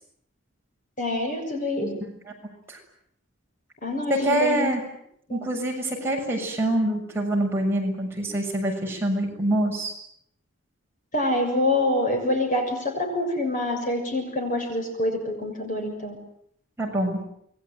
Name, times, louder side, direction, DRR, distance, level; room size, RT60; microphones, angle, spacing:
voice 1, 1.0-1.9 3.8-4.7 5.3-5.4 11.1-16.2, left 1 dB, 40° left, 4 dB, 6.8 m, -26 dB
voice 2, 4.1-4.8 5.3-9.9 16.8-17.2, right 1 dB, 10° right, -1 dB, 6.9 m, -25 dB
27.5 x 22.0 x 9.4 m, 0.72 s
head